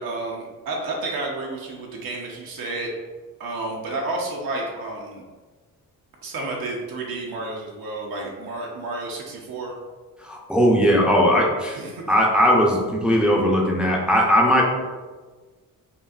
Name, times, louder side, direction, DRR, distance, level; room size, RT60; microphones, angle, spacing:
voice 1, 0.0-2.9 3.4-5.2 6.2-9.7 11.7-12.0, right 2 dB, 75° right, -2 dB, 0.8 m, -31 dB
voice 2, 10.2-11.8 12.1-14.6, equal, 5° right, -3 dB, 0.5 m, -18 dB
5.6 x 2.5 x 2.4 m, 1.4 s
cardioid pair, 120°, 35 cm